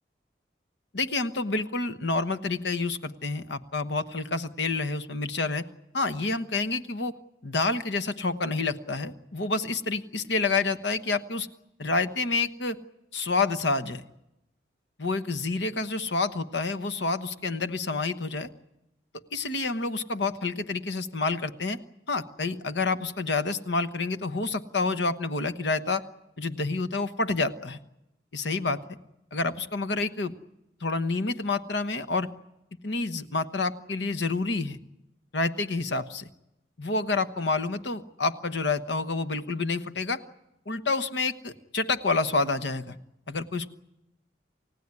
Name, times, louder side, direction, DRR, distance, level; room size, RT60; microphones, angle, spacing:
voice 1, 0.9-5.7 5.9-7.1 7.4-11.5 11.8-12.8 13.1-14.0 15.0-18.5 19.3-21.8 22.1-26.0 26.4-27.8 28.3-28.8 29.3-30.3 30.8-32.3 32.8-34.8 35.3-36.3 36.8-40.2 40.7-43.0 43.3-43.7, left 3 dB, 75° left, 10 dB, 1.2 m, -28 dB
29.0 x 16.0 x 9.7 m, 0.91 s
head